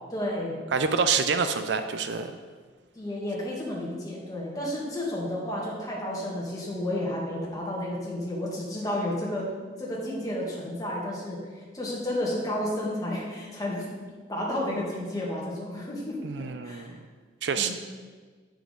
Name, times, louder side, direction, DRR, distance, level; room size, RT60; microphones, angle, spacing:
voice 1, 0.1-0.6 3.0-9.5 9.8-13.9 14.3-16.2 16.6-16.9 17.6-17.7, left 1 dB, 20° left, -5 dB, 1.8 m, -31 dB
voice 2, 0.7-2.4 16.2-17.0 17.4-17.7, right 5 dB, 70° right, 9 dB, 0.5 m, -27 dB
8.4 x 6.0 x 3.7 m, 1.5 s
head